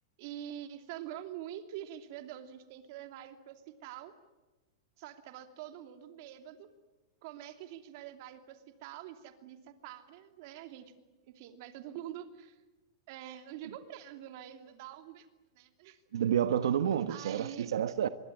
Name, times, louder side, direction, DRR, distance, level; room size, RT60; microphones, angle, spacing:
voice 1, 0.2-4.1 5.0-6.7 7.2-10.9 11.3-12.6 13.1-15.3 15.5-16.0 17.1-17.7, right 11 dB, 40° right, 2.8 m, -45 dB
voice 2, 16.1-18.1, right 9 dB, 85° right, 1.3 m, -29 dB
25.5 x 23.0 x 9.9 m
supercardioid pair, 170°, 2 cm